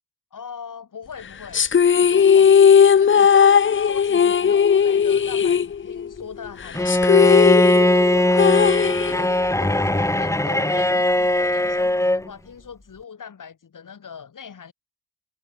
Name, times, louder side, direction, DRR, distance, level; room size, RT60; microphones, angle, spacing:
voice 1, 0.3-2.6 3.0-7.1 7.7-14.7, left 6 dB, 55° left, 7.0 m, -40 dB
sound 1, 1.5-6.2 6.5-6.6 6.9-9.5, left 7 dB, 30° left, 0.6 m, -16 dB
Bowed string instrument, 6.7-12.3, left 1 dB, 10° left, 1.9 m, -19 dB
cardioid pair, 65°, 38 cm